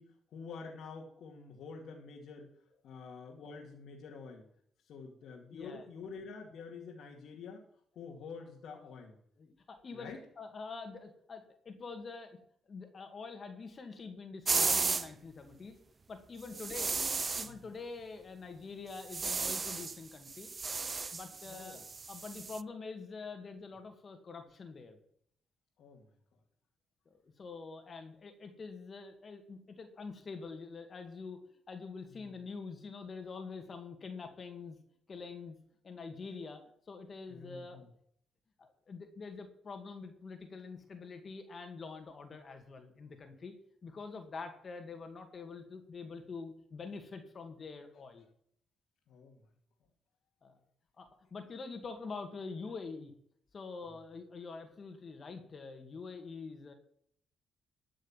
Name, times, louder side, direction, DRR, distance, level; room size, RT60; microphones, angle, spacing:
voice 1, 0.0-2.5 2.8-4.5 4.8-7.6 8.0-9.2 9.9-10.2 16.5-16.7 17.4-17.6 21.4-21.8 25.8-26.1 32.2-32.3 37.3-37.9 49.1-49.4, left 5 dB, 70° left, -1 dB, 2.4 m, -48 dB
voice 2, 5.5-5.9 9.4-12.4 12.7-15.8 16.1-16.9 17.4-20.5 21.1-25.0 27.2-31.4 31.7-34.8 35.1-35.6 35.8-37.8 38.6-43.5 43.8-48.3 50.4-50.6 51.0-53.1 53.5-56.7, left 4 dB, 40° left, 6 dB, 2.2 m, -45 dB
sound 1, 14.5-15.1 16.5-17.5 19.0-20.0 20.3-22.6, right 4 dB, 30° right, 0.5 m, -34 dB
13.5 x 6.4 x 7.4 m, 0.65 s
cardioid pair, 90°, 0 cm